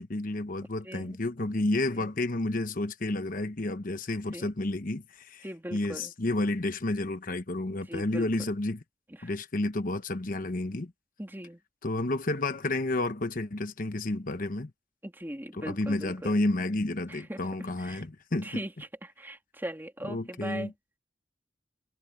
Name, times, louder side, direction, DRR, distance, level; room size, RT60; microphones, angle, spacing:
voice 1, 0.0-5.5 5.7-8.8 9.2-10.9 11.8-14.7 15.5-18.6 20.0-20.7, left 2 dB, 50° left, 1.0 m, -31 dB
voice 2, 0.8-1.2 1.9-2.1 4.3-4.5 5.4-6.1 7.9-8.5 9.2-9.3 11.2-11.6 15.0-16.3 17.1-17.4 17.8-18.1 18.4-18.7 19.0-20.7, right 1 dB, 10° right, 2.9 m, -39 dB
head